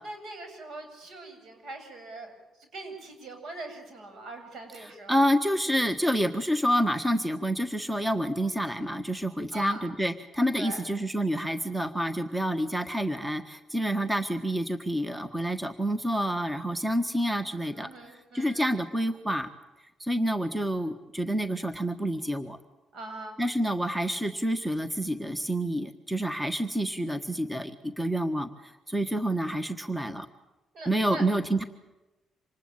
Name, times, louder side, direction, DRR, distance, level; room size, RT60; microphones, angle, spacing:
voice 1, 0.0-2.3 2.7-5.2 9.5-9.8 10.5-10.8 17.7-18.6 22.9-23.4 30.7-31.2, right 2 dB, 65° right, 6 dB, 7.7 m, -42 dB
voice 2, 4.7-17.9 18.3-19.5 20.0-22.6 23.4-30.3 30.8-31.6, equal, 10° right, 9 dB, 1.5 m, -28 dB
26.5 x 20.0 x 9.0 m, 1.0 s
cardioid pair, 90°, 0 cm